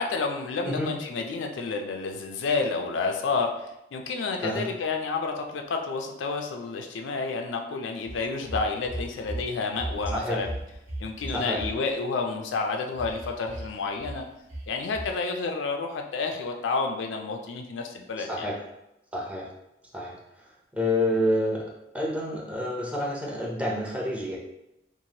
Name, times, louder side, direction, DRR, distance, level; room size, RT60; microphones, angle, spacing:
voice 1, 0.0-10.5 11.0-14.3 14.7-18.5, left 4 dB, 70° left, 3 dB, 0.4 m, -30 dB
sound 1, 8.1-9.4 9.7-11.7 13.0-13.7 14.0-14.2 14.5-14.7 14.9-15.1, right 1 dB, 80° right, 1.3 m, -35 dB
voice 2, 19.1-19.5 19.9-20.2 20.7-24.4, left 1 dB, 5° right, -3 dB, 0.5 m, -28 dB
3.0 x 2.4 x 2.7 m, 0.87 s
head